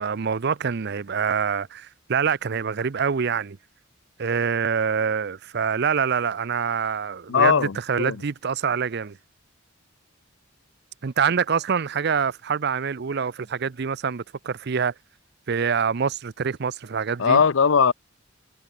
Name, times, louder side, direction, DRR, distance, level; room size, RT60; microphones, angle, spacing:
voice 1, 0.0-3.6 4.2-9.2 11.0-14.9 15.5-17.4, right 6 dB, 55° right, 0.5 m, -25 dB
voice 2, 7.3-8.2 17.2-17.9, left 6 dB, 75° left, 0.6 m, -19 dB
head